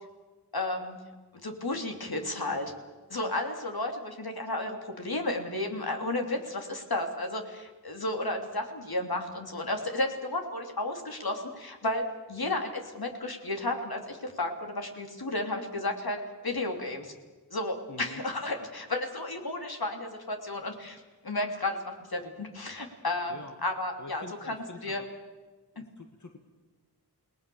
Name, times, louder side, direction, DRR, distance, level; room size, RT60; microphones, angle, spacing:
voice 1, 0.5-1.0 1.4-2.7 3.1-17.1 17.5-24.6 24.8-25.0 25.8-25.9, left 2 dB, 70° left, 3 dB, 3.2 m, -33 dB
voice 2, 17.9-18.2 23.3-23.5 24.0-25.1 25.7-26.4, left 2 dB, 50° left, 4 dB, 1.8 m, -46 dB
29.0 x 19.5 x 7.1 m, 1.3 s
wide cardioid pair, 65°, 39 cm